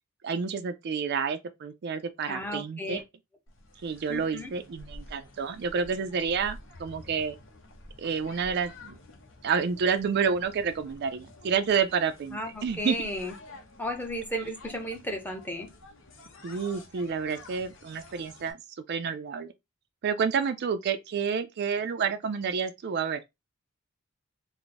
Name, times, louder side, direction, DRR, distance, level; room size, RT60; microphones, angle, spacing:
voice 1, 0.2-3.0 3.8-7.4 8.0-9.0 9.4-13.0 16.4-18.6 18.9-19.5 20.0-23.2, right 6 dB, 55° right, 0.4 m, -29 dB
voice 2, 2.3-3.0 4.1-4.5 12.3-13.3 13.8-15.7, equal, 10° left, 0.7 m, -34 dB
sound 1, 3.5-18.5, left 1 dB, 65° left, 0.8 m, -50 dB
3.4 x 2.0 x 3.8 m
head